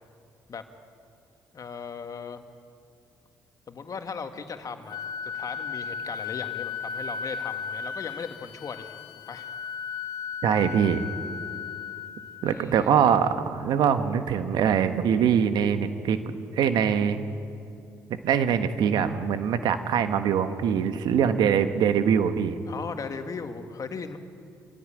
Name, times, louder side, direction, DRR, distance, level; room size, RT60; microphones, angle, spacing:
voice 1, 1.5-2.4 3.7-5.0 5.2-9.0 9.3-9.5 12.4-12.9 22.7-24.2, left 5 dB, 50° left, 7 dB, 2.0 m, -37 dB
Wind instrument woodwind instrument, 4.9-12.6, left 6 dB, 65° left, 1.4 m, -35 dB
voice 2, 10.4-11.0 12.4-16.2 16.5-17.2 18.2-22.6, right 8 dB, 70° right, 9 dB, 1.4 m, -23 dB
26.0 x 16.5 x 8.9 m, 2.5 s
hypercardioid pair, 50°, 8 cm